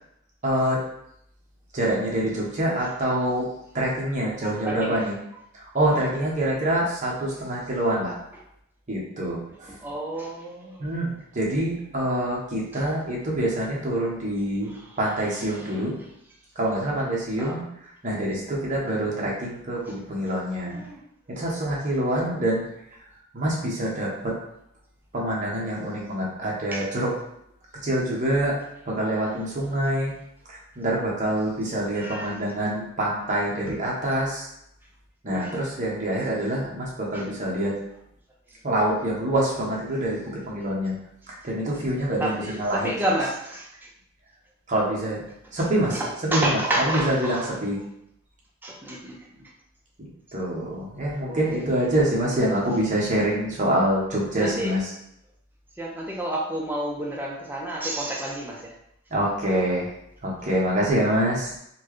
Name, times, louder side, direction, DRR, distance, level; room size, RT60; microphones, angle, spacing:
voice 1, 0.4-0.8 1.7-3.5 3.7-5.1 5.5-8.2 8.9-9.7 10.8-14.7 15.0-15.9 16.6-17.6 18.0-20.8 21.3-22.6 23.3-24.4 25.1-27.1 27.8-28.6 28.9-30.1 30.5-34.5 35.2-37.8 38.6-41.0 41.4-42.9 44.7-45.2 45.5-47.8 50.0-54.8 59.1-59.9 60.2-61.5, right 1 dB, 35° right, -4 dB, 1.0 m, -26 dB
voice 2, 4.4-5.1 5.9-6.1 9.7-10.9 12.7-12.8 14.7-15.0 15.5-15.8 17.4-17.6 20.7-21.0 26.7-26.9 31.9-32.4 35.3-35.5 37.1-37.3 42.2-43.9 45.4-47.6 48.6-49.4 51.2-51.6 51.9-52.3 54.4-54.8 55.8-58.7, right 1 dB, 10° right, -3 dB, 0.5 m, -31 dB
4.3 x 2.2 x 3.1 m, 0.74 s
head